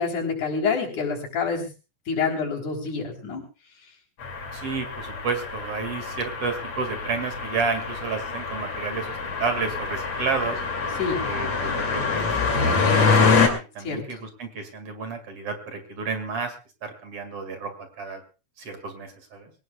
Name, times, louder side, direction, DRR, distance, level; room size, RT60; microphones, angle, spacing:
voice 1, 0.0-1.7 2.1-3.4 11.0-11.2 13.8-14.0, left 5 dB, 90° left, 1 dB, 5.2 m, -27 dB
sound 1, 4.2-13.5, left 4 dB, 65° left, 3.9 m, -25 dB
voice 2, 4.5-10.6 11.2-16.5 16.8-18.2 18.6-19.5, right 4 dB, 55° right, 6 dB, 3.1 m, -31 dB
23.0 x 18.0 x 2.4 m, 0.32 s
omnidirectional pair, 3.4 m